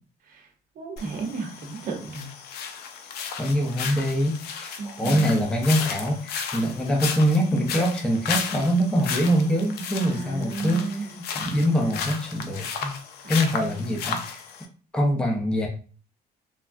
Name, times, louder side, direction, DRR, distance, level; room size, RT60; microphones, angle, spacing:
voice 1, 0.8-2.3 4.8-5.5 10.0-11.2 13.2-14.2, right 3 dB, 55° right, 2 dB, 0.9 m, -33 dB
sound 1, 1.0-14.7, left 6 dB, 70° left, 0.5 m, -34 dB
voice 2, 3.4-13.0 13.3-14.4 14.9-15.7, equal, 5° left, 0 dB, 0.6 m, -24 dB
3.3 x 2.2 x 2.5 m, 0.39 s
cardioid pair, 110°, 17 cm